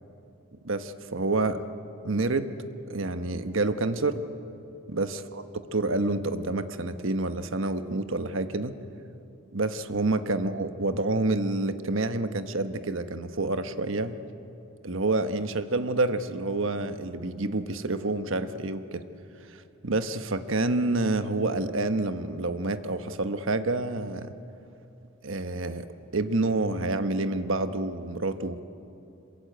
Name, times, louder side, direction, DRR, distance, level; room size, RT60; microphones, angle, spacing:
voice 1, 0.6-1.6 2.0-2.5 2.9-4.2 4.9-5.4 5.7-8.8 9.5-14.2 14.8-19.0 19.5-24.3 25.2-25.9 26.1-28.6, right 2 dB, 65° right, 10 dB, 1.2 m, -28 dB
26.0 x 22.0 x 9.1 m, 2.8 s
head